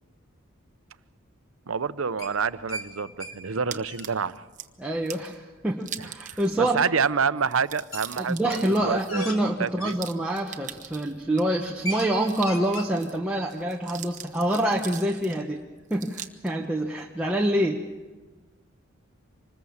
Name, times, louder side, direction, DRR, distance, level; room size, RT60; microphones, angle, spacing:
voice 1, 1.7-4.4 6.6-9.3 9.6-10.0, right 5 dB, 85° right, 14 dB, 0.7 m, -27 dB
sound 1, 2.2-2.9 3.2-3.4 3.6-4.1 6.3-6.4 7.9-8.0 8.4-10.0 10.6-10.9 11.2-11.3 11.6-12.1 12.4-12.9, equal, 75° left, 3.4 m, -37 dB
sound 2, 3.7-4.7 5.1-5.3 5.8-6.7 7.0-7.1 7.4-11.4 11.9-13.2 13.5-15.4 15.9-16.5, right 10 dB, 35° right, 1.1 m, -41 dB
voice 2, 4.8-6.9 8.2-15.6 15.9-17.8, right 1 dB, 5° right, -2 dB, 1.1 m, -26 dB
26.0 x 20.5 x 7.2 m, 1.2 s
head